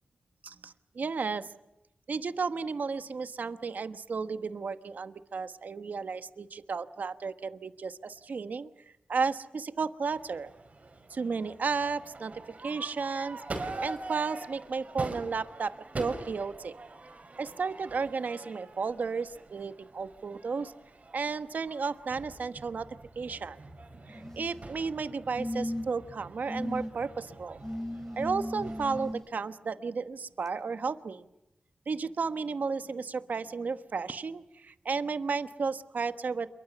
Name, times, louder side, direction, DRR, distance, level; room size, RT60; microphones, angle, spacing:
voice 1, 0.4-1.5 2.1-8.7 9.1-10.5 11.1-12.3 12.6-16.7 17.4-20.7 21.1-22.9 23.2-23.6 24.1-27.6 28.2-31.2 31.9-36.5, right 5 dB, 75° right, 11 dB, 1.1 m, -33 dB
Crowd / Fireworks, 10.1-29.1, right 2 dB, 55° right, 5.3 m, -44 dB
sound 1, 24.1-24.7 25.4-26.0 26.5-26.9 27.6-29.2 30.5-30.6, left 1 dB, 15° left, 8.0 m, -36 dB
27.5 x 23.0 x 6.9 m, 0.88 s
cardioid pair, 50°, 3 cm